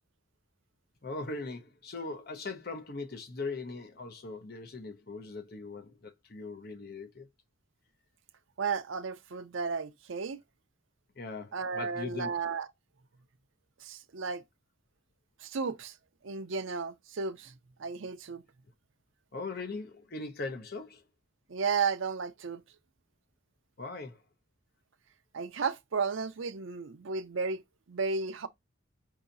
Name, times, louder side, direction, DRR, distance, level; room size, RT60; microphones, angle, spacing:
voice 1, 1.0-7.3 11.2-12.3 19.3-21.0 23.8-24.2, left 3 dB, 50° left, 0.8 m, -40 dB
voice 2, 8.6-10.4 11.5-12.7 13.8-14.4 15.4-16.0 16.2-17.5 17.8-18.4 21.5-22.6 25.3-27.6 27.9-28.5, right 5 dB, 75° right, 0.6 m, -33 dB
4.7 x 2.9 x 3.9 m
head